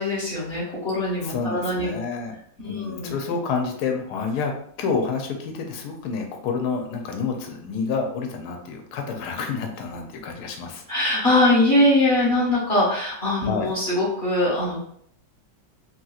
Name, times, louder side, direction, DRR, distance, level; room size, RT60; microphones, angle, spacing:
voice 1, 0.0-2.0 2.6-3.1 10.9-14.8, left 1 dB, 30° left, -9 dB, 1.3 m, -22 dB
voice 2, 1.2-2.3 2.6-4.5 4.8-10.8 13.4-13.7, left 5 dB, 70° left, 3 dB, 1.1 m, -28 dB
3.1 x 2.9 x 2.3 m, 0.66 s
omnidirectional pair, 1.9 m